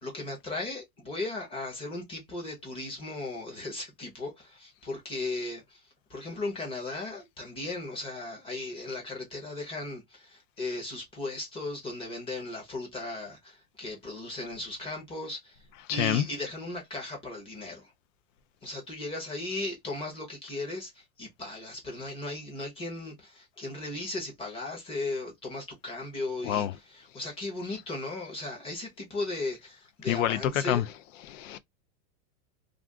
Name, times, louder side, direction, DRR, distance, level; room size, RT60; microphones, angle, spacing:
voice 1, 0.0-5.8 6.1-15.6 15.9-17.9 18.6-30.8, left 2 dB, 10° left, 0.7 m, -37 dB
voice 2, 15.9-16.3 26.4-26.7 30.1-30.8 31.3-31.6, left 11 dB, 60° left, 0.5 m, -27 dB
2.5 x 2.4 x 3.4 m
supercardioid pair, 160°, 45 cm